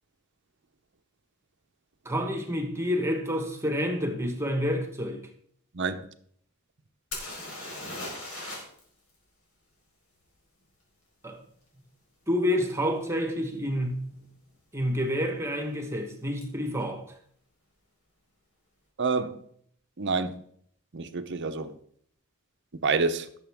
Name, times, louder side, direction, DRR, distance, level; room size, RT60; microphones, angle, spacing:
voice 1, 2.0-5.3 11.2-11.4 12.3-14.1 14.7-17.1, equal, 10° right, 1.4 m, -28 dB
voice 2, 5.7-6.1 19.0-19.4 20.0-20.4 20.9-21.7 22.8-23.3, right 4 dB, 55° right, 0.8 m, -27 dB
sound 1, 7.1-8.8 9.1-9.2 12.6-12.7 13.3-13.5 13.8-14.4 16.4-16.5 16.8-16.9, left 2 dB, 65° left, 4.4 m, -38 dB
18.0 x 6.9 x 3.6 m
head